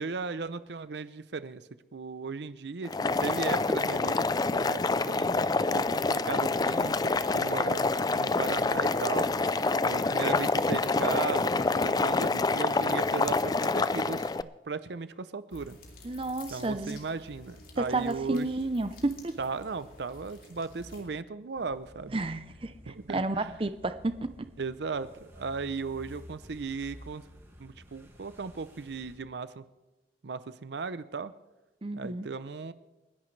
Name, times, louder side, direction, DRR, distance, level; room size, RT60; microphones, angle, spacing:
voice 1, 0.0-1.6 1.9-4.3 4.5-9.3 9.9-14.3 14.6-15.8 16.5-18.5 19.4-22.2 22.9-23.5 24.6-27.3 27.6-29.6 30.2-31.3 31.9-32.7, right 4 dB, 70° right, 14 dB, 0.6 m, -36 dB
Boiling, 2.8-14.4, left 3 dB, 20° left, 0.4 m, -27 dB
sound 1, 15.5-21.0, left 2 dB, 50° left, 3.2 m, -51 dB
voice 2, 16.0-17.0 17.8-19.3 22.1-24.5 31.8-32.3, right 2 dB, 30° right, 11 dB, 0.6 m, -31 dB
sound 2, 21.6-29.2, equal, 15° right, 2.0 m, -52 dB
29.5 x 11.0 x 3.3 m, 1.1 s
head